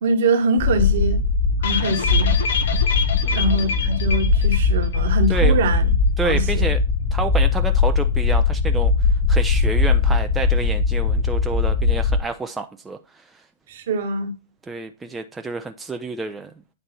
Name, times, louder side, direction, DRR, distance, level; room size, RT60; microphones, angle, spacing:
voice 1, 0.0-1.2 1.6-2.3 3.3-5.9 6.2-6.6 13.7-14.3, right 2 dB, 55° right, 1.1 m, -23 dB
sound 1, 0.6-12.2, left 4 dB, 35° left, 2.6 m, -20 dB
sound 2, 1.6-5.1 5.3-5.4 5.8-5.9, left 5 dB, 60° left, 0.7 m, -27 dB
voice 2, 3.2-3.8 5.3-5.6 6.2-6.8 7.1-8.9 9.3-13.0 14.7-16.5, right 3 dB, 10° right, 0.4 m, -29 dB
9.0 x 3.3 x 4.1 m
figure-of-eight pair, 110°, 0 cm